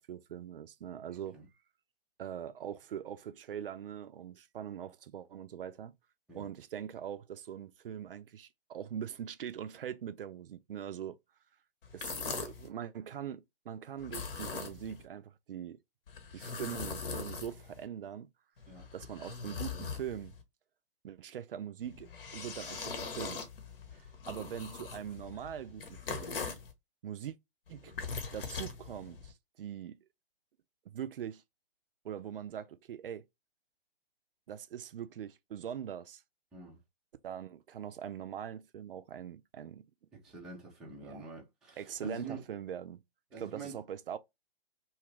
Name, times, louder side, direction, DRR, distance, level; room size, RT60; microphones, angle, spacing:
voice 1, 0.0-1.4 2.2-5.9 6.3-11.2 11.9-15.8 16.3-18.3 18.9-20.3 21.0-23.4 24.3-26.4 27.0-27.4 27.7-27.9 28.3-30.0 30.9-31.4 32.0-33.2 34.5-36.2 37.2-39.9 41.0-41.3 41.8-43.0 43.4-44.2, right 9 dB, 65° right, 0.4 m, -42 dB
voice 2, 1.1-1.5 6.3-6.5 18.7-18.9 23.9-24.1 36.5-36.8 40.2-42.4 43.3-43.8, right 3 dB, ahead, 0.4 m, -46 dB
sound 1, 11.8-12.7 14.0-15.0 16.1-17.8 18.6-20.4 21.8-26.7 27.7-29.3, left 5 dB, 65° left, 1.0 m, -41 dB
2.9 x 2.3 x 3.2 m
figure-of-eight pair, 125°, 30 cm